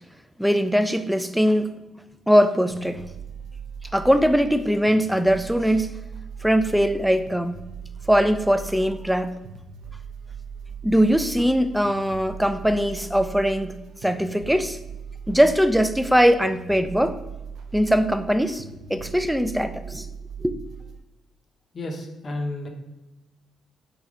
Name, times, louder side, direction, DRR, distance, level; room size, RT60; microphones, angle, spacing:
voice 1, 0.4-1.7 2.3-3.0 3.9-5.9 6.4-7.6 8.1-9.3 10.8-13.8 14.0-14.8 15.3-17.2 17.7-18.6 18.9-20.1 20.4-20.5, equal, ahead, 0.3 m, -21 dB
sound 1, 2.7-21.0, right 6 dB, 75° right, 0.5 m, -39 dB
voice 2, 21.7-22.7, left 2 dB, 40° left, 0.8 m, -31 dB
4.1 x 3.5 x 3.6 m
cardioid pair, 90°, 0 cm